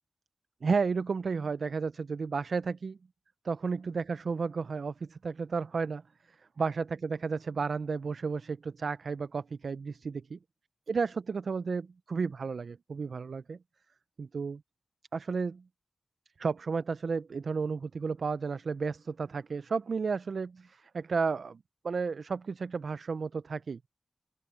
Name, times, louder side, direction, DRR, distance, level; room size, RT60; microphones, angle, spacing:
voice 1, 0.6-3.0 3.4-6.0 6.6-10.4 10.9-13.6 14.2-14.6 15.1-15.6 16.4-21.6 21.8-23.8, right 5 dB, 65° right, 0.4 m, -32 dB
open air
wide cardioid pair, 145°, 0 cm